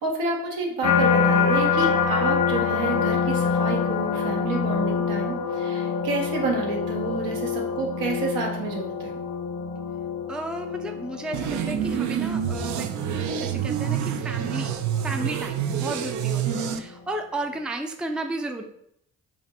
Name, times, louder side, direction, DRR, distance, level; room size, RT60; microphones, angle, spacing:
voice 1, 0.0-9.2 16.4-16.8, right 2 dB, 75° right, 0 dB, 0.9 m, -29 dB
sound 1, 0.8-16.0 16.5-17.0, left 5 dB, 50° left, 0.6 m, -26 dB
voice 2, 10.3-12.9 13.3-14.8 15.0-16.4 16.8-18.6, right 1 dB, 5° right, 4 dB, 0.4 m, -33 dB
sound 2, 11.3-16.8, right 9 dB, 55° right, 0.5 m, -27 dB
2.5 x 2.5 x 4.1 m, 0.71 s
hypercardioid pair, 45°, 35 cm